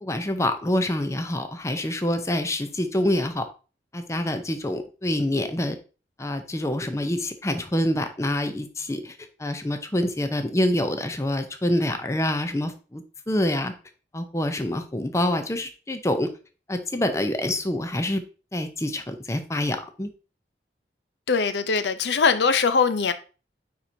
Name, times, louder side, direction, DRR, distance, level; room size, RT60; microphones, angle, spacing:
voice 1, 0.0-3.5 3.9-5.8 6.2-9.1 9.4-13.7 14.1-16.3 16.7-18.2 18.5-20.1, left 1 dB, 15° left, 0.6 m, -26 dB
voice 2, 21.3-23.1, left 5 dB, 75° left, 0.5 m, -21 dB
9.4 x 4.4 x 2.7 m
head